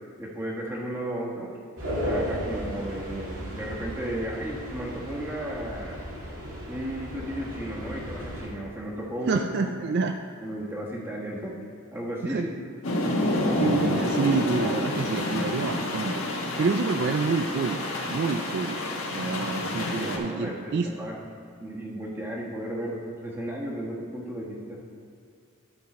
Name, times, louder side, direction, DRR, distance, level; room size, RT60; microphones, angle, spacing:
voice 1, 0.2-1.5 2.0-6.0 6.7-9.4 9.9-10.0 10.4-11.6 11.9-12.5 20.0-24.8, right 1 dB, 10° right, -4 dB, 1.3 m, -34 dB
sound 1, 1.8-8.5, equal, 70° right, 2.0 m, -35 dB
voice 2, 9.3-10.1 12.3-12.4 13.4-16.2 16.6-17.8 18.1-18.8 19.1-20.9, right 4 dB, 50° right, 6 dB, 0.3 m, -27 dB
sound 2, 12.8-20.2, left 1 dB, 65° left, 1.3 m, -28 dB
12.0 x 5.7 x 4.2 m, 2.4 s
head